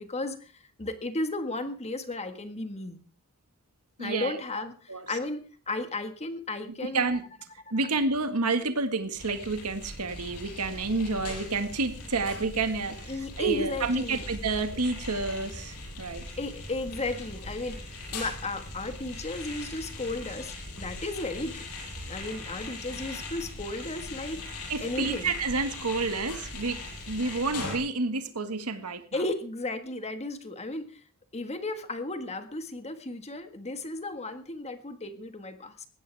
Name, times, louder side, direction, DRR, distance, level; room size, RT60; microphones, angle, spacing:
voice 1, 0.0-3.0 4.0-5.4 5.7-7.2 7.8-7.9 12.9-14.3 16.4-21.7 22.1-24.4 24.8-25.4 29.1-31.0 31.3-35.9, left 2 dB, 30° left, 8 dB, 1.7 m, -34 dB
voice 2, 4.0-4.4 4.9-5.1 6.8-7.2 7.7-13.1 13.4-16.2 24.7-26.8 27.1-29.2, right 3 dB, 85° right, 8 dB, 1.8 m, -29 dB
sound 1, 9.1-27.8, left 2 dB, 80° left, 7.3 m, -40 dB
20.0 x 16.5 x 3.5 m, 0.38 s
head